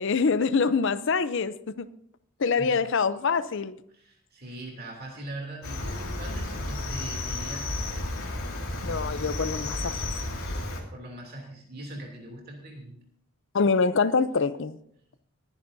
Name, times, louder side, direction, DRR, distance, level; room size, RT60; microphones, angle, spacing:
voice 1, 0.0-1.9 2.4-3.8 8.8-10.0 13.5-14.8, left 4 dB, 60° left, 0.6 m, -25 dB
voice 2, 3.9-7.7 10.9-13.0, right 1 dB, 45° right, 2.9 m, -41 dB
Cricket, 5.6-10.8, left 2 dB, 90° left, 2.3 m, -32 dB
21.5 x 10.5 x 2.7 m
head